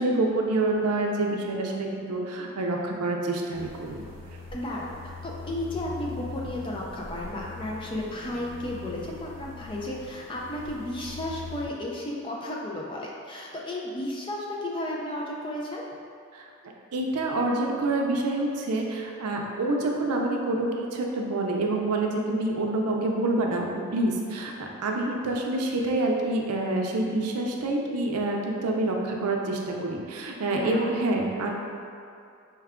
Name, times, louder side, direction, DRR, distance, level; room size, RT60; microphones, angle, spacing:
voice 1, 0.0-4.0 16.3-16.4 16.9-31.5, right 2 dB, 85° right, 1 dB, 0.5 m, -27 dB
sound 1, 3.5-11.7, left 4 dB, 25° right, 0.7 m, -42 dB
voice 2, 4.5-15.8 30.5-30.9, left 1 dB, 20° left, -3 dB, 0.4 m, -33 dB
4.5 x 2.2 x 3.5 m, 2.5 s
head